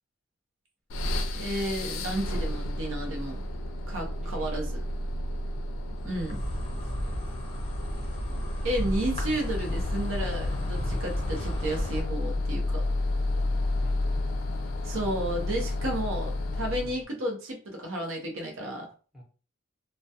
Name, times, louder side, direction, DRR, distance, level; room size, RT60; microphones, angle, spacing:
sound 1, 0.9-17.0, left 1 dB, 75° left, 0.4 m, -31 dB
voice 1, 1.3-3.4 3.9-4.7 6.0-6.4 8.6-12.8 14.8-18.9, right 1 dB, 85° right, 1 dB, 0.7 m, -32 dB
voice 2, 4.2-4.7 6.5-7.3 13.5-14.0 16.8-17.1 19.1-19.2, right 1 dB, 5° right, -3 dB, 0.9 m, -52 dB
Insect, 6.0-12.0, equal, 30° left, 0.6 m, -34 dB
2.2 x 2.2 x 2.7 m, 0.37 s
head